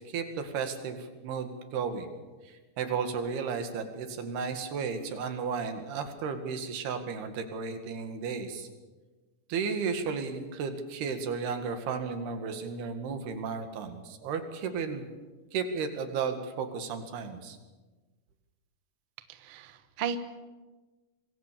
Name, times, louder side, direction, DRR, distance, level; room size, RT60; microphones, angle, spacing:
voice 1, 0.1-2.1 2.8-8.7 9.5-15.1 15.5-17.6, right 5 dB, 90° right, 7 dB, 4.0 m, -34 dB
voice 2, 19.3-20.2, right 8 dB, 70° right, 10 dB, 1.2 m, -35 dB
25.5 x 21.5 x 6.9 m, 1.3 s
omnidirectional pair, 4.4 m